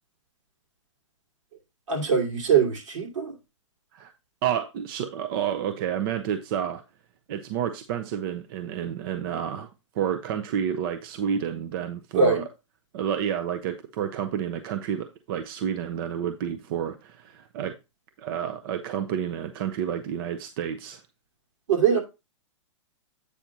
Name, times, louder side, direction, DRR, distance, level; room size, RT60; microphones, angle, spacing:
voice 1, 1.9-3.3 12.1-12.4 21.7-22.0, right 6 dB, 75° right, 2.7 m, -22 dB
voice 2, 4.4-6.8 7.3-9.7 10.0-12.4 12.9-17.8 18.2-21.0, right 9 dB, 45° right, 0.6 m, -30 dB
8.4 x 2.8 x 5.9 m
hypercardioid pair, 145°, 16 cm